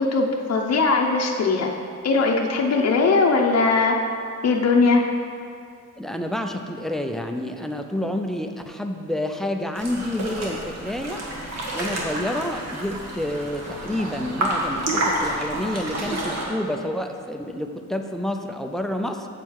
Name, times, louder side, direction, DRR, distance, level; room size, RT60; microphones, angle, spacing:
voice 1, 0.0-1.7 2.0-4.0 4.4-5.0, left 4 dB, 50° left, 0 dB, 0.7 m, -20 dB
voice 2, 6.0-11.2 11.7-19.3, left 1 dB, ahead, 4 dB, 0.5 m, -29 dB
sound 1, 9.8-16.4, right 1 dB, 55° right, 1.6 m, -29 dB
7.6 x 7.3 x 4.7 m, 2.3 s
wide cardioid pair, 140°, 32 cm